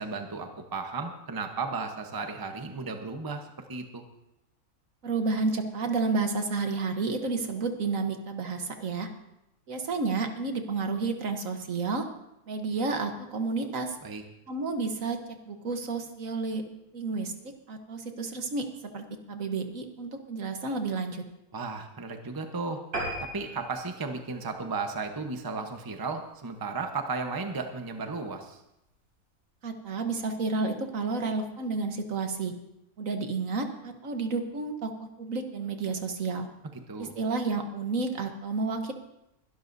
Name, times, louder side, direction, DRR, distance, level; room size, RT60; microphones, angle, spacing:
voice 1, 0.0-4.0 14.0-14.2 21.5-22.8 23.2-28.6 36.7-37.1, right 4 dB, 15° right, 5 dB, 0.9 m, -34 dB
voice 2, 5.0-9.1 9.7-12.0 12.5-14.0 14.5-15.2 15.5-16.6 16.9-18.7 18.9-21.2 29.6-32.5 33.0-36.5 37.0-38.9, right 3 dB, 60° right, 5 dB, 1.5 m, -31 dB
sound 1, 22.9-25.7 26.2-26.4 26.8-26.9 27.2-27.3 27.5-27.6, right 1 dB, 80° right, 3.9 m, -38 dB
22.0 x 12.0 x 2.7 m, 0.87 s
omnidirectional pair, 1.6 m